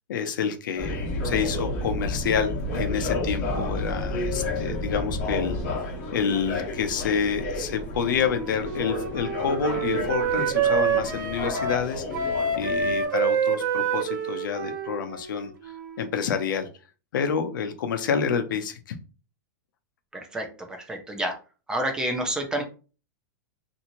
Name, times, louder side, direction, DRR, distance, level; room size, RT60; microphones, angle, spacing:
voice 1, 0.1-5.6 6.1-15.5 16.0-16.7 17.1-18.8, left 7 dB, 85° left, 7 dB, 0.6 m, -28 dB
sound 1, 0.7-13.0, left 2 dB, 40° left, 1.0 m, -33 dB
sound 2, 0.8-5.8, left 1 dB, 25° right, 1.0 m, -32 dB
Wind instrument woodwind instrument, 8.1-16.1, right 5 dB, 70° right, 0.8 m, -27 dB
voice 2, 20.1-21.3 21.7-22.6, right 1 dB, 5° right, 4 dB, 0.4 m, -29 dB
2.9 x 2.7 x 2.6 m, 0.35 s
supercardioid pair, 165°, 11 cm